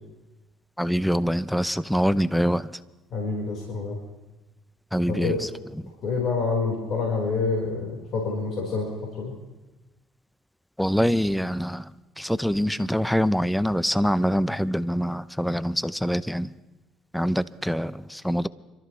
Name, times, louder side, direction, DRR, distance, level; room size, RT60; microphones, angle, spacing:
voice 1, 0.8-2.7 4.9-5.3 10.8-11.9 12.2-16.5 17.1-18.5, equal, ahead, 16 dB, 0.6 m, -24 dB
voice 2, 3.1-4.0 5.0-5.4 6.0-9.3, left 4 dB, 55° left, -2 dB, 4.6 m, -27 dB
26.5 x 13.5 x 3.2 m, 1.1 s
supercardioid pair, 75°, 0 cm